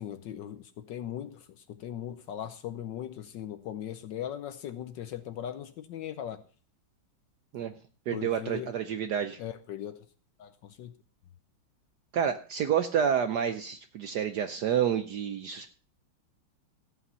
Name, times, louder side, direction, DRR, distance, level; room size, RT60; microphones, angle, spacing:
voice 1, 0.0-6.4 8.1-8.7 9.4-10.0 10.4-10.9, left 10 dB, 70° left, 1.3 m, -39 dB
voice 2, 8.1-9.4 12.1-15.7, right 8 dB, 65° right, 1.1 m, -29 dB
14.0 x 8.6 x 5.5 m
omnidirectional pair, 2.3 m